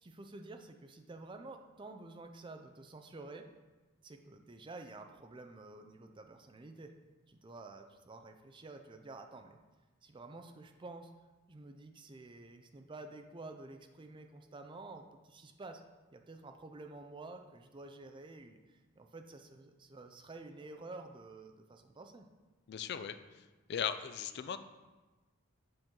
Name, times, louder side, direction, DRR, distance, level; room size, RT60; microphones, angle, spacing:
voice 1, 0.0-3.5 4.0-6.9 7.3-9.6 10.0-11.1 11.5-15.8 16.1-22.3, right 2 dB, 25° right, 5 dB, 0.4 m, -50 dB
voice 2, 22.7-23.2 23.7-24.6, left 8 dB, 50° left, 11 dB, 0.3 m, -37 dB
7.7 x 4.5 x 3.7 m, 1.2 s
head